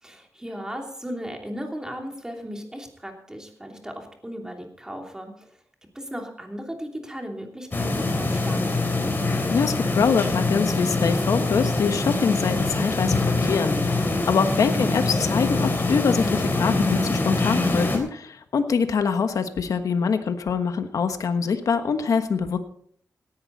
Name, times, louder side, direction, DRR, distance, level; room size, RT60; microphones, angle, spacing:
voice 1, 0.0-5.5 5.9-9.1 14.5-14.8, equal, 10° right, 2 dB, 3.0 m, -36 dB
sound 1, 7.7-18.0, left 2 dB, 35° left, 3.4 m, -24 dB
voice 2, 9.5-22.6, left 6 dB, 80° left, 8 dB, 1.3 m, -24 dB
17.5 x 11.0 x 4.1 m, 0.62 s
wide cardioid pair, 105°, 6 cm